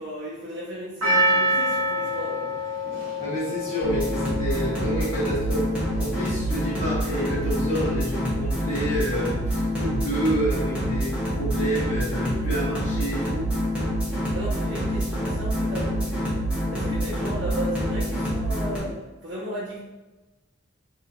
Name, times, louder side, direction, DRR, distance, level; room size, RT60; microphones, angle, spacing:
voice 1, 0.0-2.5 14.1-16.2 16.7-19.8, right 1 dB, 65° right, -8 dB, 0.8 m, -35 dB
Percussion, 1.0-5.4 6.0-6.1, equal, 90° right, 1.1 m, -26 dB
voice 2, 3.2-5.6 6.0-13.5, right 1 dB, 45° left, -10 dB, 0.9 m, -28 dB
sound 1, 3.8-18.8, equal, 5° right, 0.9 m, -26 dB
3.9 x 2.7 x 2.3 m, 1.1 s
head